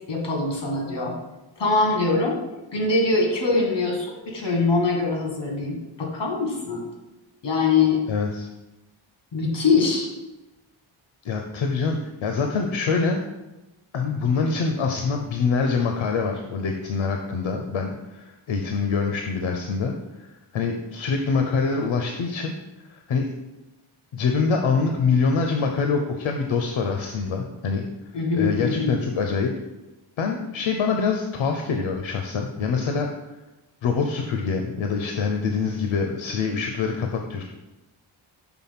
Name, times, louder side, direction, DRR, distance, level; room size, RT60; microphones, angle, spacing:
voice 1, 0.1-1.1 1.6-2.4 2.7-6.8 7.4-8.0 9.3-10.1 28.1-29.0, left 3 dB, 60° left, 0 dB, 1.7 m, -23 dB
voice 2, 8.1-8.5 11.2-13.3 13.9-22.5 22.9-23.2 24.1-27.9 28.3-29.5 30.2-33.1 33.8-37.4, left 5 dB, 80° left, 3 dB, 0.7 m, -25 dB
6.1 x 3.6 x 5.8 m, 1.0 s
wide cardioid pair, 165°, 47 cm